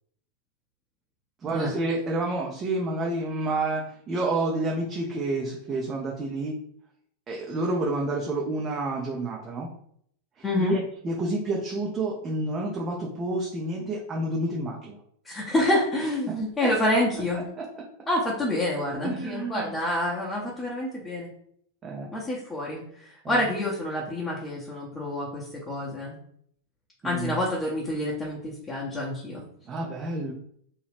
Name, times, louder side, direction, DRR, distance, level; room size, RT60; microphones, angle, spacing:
voice 1, 1.4-6.6 7.3-9.7 10.4-15.0 16.3-16.4 17.6-17.7 19.0-19.8 21.8-22.1 23.2-23.4 27.0-27.4 29.7-30.3, right 2 dB, 25° right, -2 dB, 0.5 m, -29 dB
voice 2, 10.4-10.8 15.2-17.4 18.1-21.3 22.1-22.8 23.3-26.2 27.0-29.4, left 1 dB, 15° left, -5 dB, 0.8 m, -27 dB
2.8 x 2.3 x 3.4 m, 0.67 s
figure-of-eight pair, 90°, 0 cm